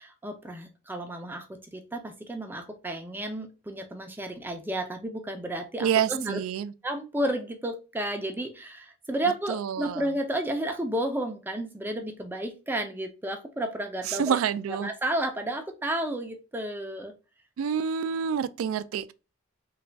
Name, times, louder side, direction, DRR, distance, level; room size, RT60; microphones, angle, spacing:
voice 1, 0.0-6.4 6.8-14.4 14.7-17.1, right 1 dB, 10° right, 0.4 m, -32 dB
voice 2, 5.8-6.7 9.5-10.1 14.0-14.9 17.6-19.1, right 8 dB, 75° right, 0.3 m, -28 dB
3.2 x 2.3 x 3.9 m
head